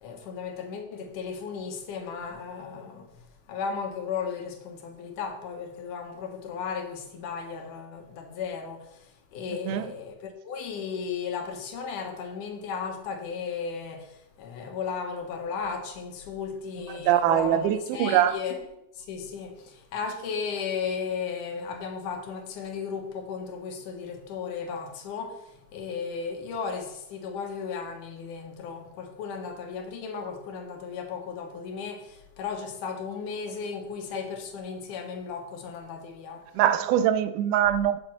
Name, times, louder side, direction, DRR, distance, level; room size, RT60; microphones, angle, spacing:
voice 1, 0.0-3.1 3.5-9.1 9.3-18.6 19.0-25.4 25.7-36.5, left 6 dB, 85° left, 2.7 m, -35 dB
voice 2, 16.9-18.4 36.6-38.0, right 11 dB, 90° right, 2.1 m, -23 dB
6.6 x 6.4 x 7.4 m
omnidirectional pair, 3.5 m